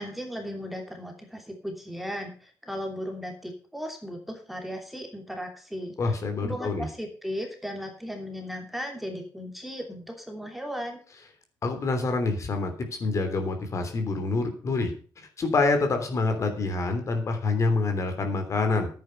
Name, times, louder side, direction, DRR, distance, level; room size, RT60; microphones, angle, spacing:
voice 1, 0.0-6.0 6.4-11.0, equal, ahead, 3 dB, 2.9 m, -36 dB
voice 2, 6.0-6.8 11.6-12.7 13.0-14.9 15.4-18.9, left 3 dB, 40° left, 6 dB, 3.1 m, -26 dB
10.5 x 9.0 x 6.5 m, 0.40 s
cardioid pair, 115°, 8 cm